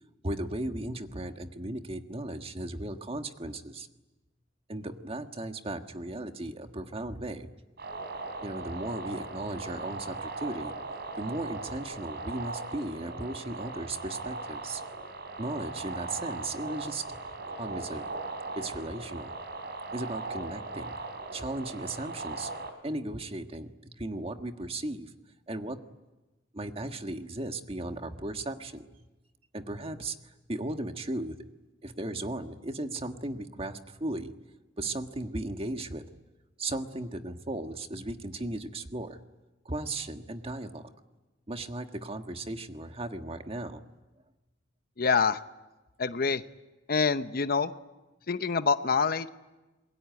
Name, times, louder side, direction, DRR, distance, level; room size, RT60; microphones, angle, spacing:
voice 1, 0.2-3.9 4.7-7.5 8.4-10.7 11.1-14.8 15.4-17.2 17.5-18.1 18.5-19.3 19.9-20.9 21.3-22.5 22.8-23.7 24.0-25.1 25.5-25.8 26.5-28.9 29.5-31.4 31.8-34.3 34.8-36.0 36.6-39.2 39.6-40.9 41.5-43.8, right 2 dB, 30° right, 6 dB, 1.5 m, -36 dB
sound 1, 7.8-22.7, right 3 dB, 60° right, 3.4 m, -39 dB
voice 2, 45.0-45.4 46.0-46.4 46.9-47.7 48.3-49.3, left 5 dB, 50° left, 11 dB, 0.8 m, -26 dB
27.0 x 22.0 x 9.5 m, 1.1 s
head